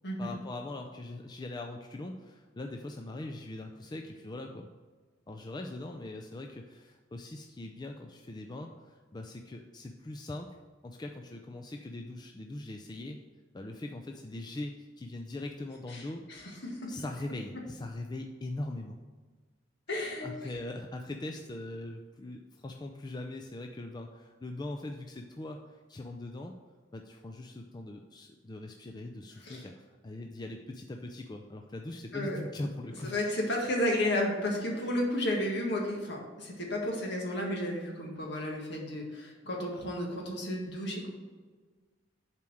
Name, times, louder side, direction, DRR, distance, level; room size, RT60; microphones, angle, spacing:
voice 1, 0.2-4.7 5.3-10.5 10.8-13.2 13.5-16.2 16.9-19.0 20.2-26.5 26.9-33.2, left 2 dB, 25° left, 4 dB, 0.4 m, -41 dB
voice 2, 15.9-16.8 19.9-20.5 29.4-29.7 32.1-32.4 33.0-41.1, left 1 dB, 65° left, 0 dB, 1.8 m, -32 dB
7.1 x 4.5 x 6.3 m, 1.4 s
head